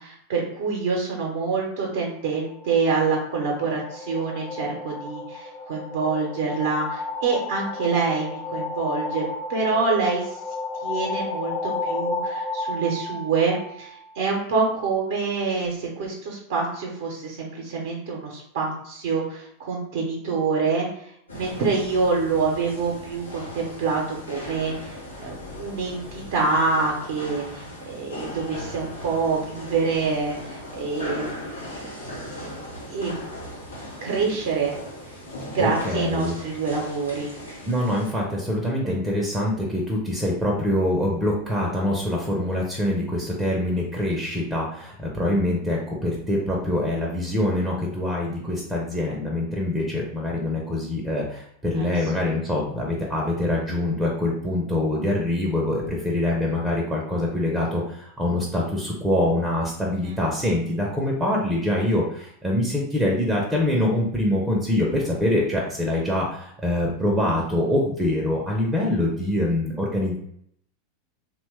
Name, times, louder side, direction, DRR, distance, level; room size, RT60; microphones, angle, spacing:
voice 1, 0.0-9.2 9.5-10.4 10.8-31.3 31.7-32.5 32.9-33.2 34.0-34.7 35.5-37.3 51.8-51.9 52.2-52.3 60.0-60.2, right 4 dB, 65° right, -2 dB, 0.6 m, -26 dB
sound 1, 2.5-14.2, left 3 dB, 35° left, 0.3 m, -32 dB
sound 2, 21.3-38.1, left 1 dB, 85° left, 0.7 m, -38 dB
voice 2, 35.6-36.3 37.7-70.2, left 1 dB, 10° right, -2 dB, 0.6 m, -24 dB
2.8 x 2.2 x 3.2 m, 0.69 s
figure-of-eight pair, 90°, 0 cm